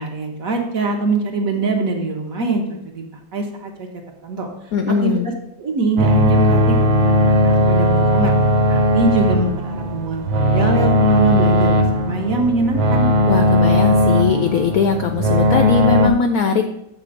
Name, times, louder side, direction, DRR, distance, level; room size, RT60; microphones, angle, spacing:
voice 1, 0.0-3.9 4.2-4.5 4.9-5.3 5.6-8.4 8.7-13.1, right 3 dB, 55° right, 2 dB, 1.1 m, -23 dB
voice 2, 4.7-5.3 13.3-16.7, left 6 dB, 80° left, 6 dB, 0.8 m, -20 dB
sound 1, 6.0-16.1, left 1 dB, 80° right, 1.5 m, -17 dB
7.6 x 3.7 x 6.4 m, 0.83 s
omnidirectional pair, 2.1 m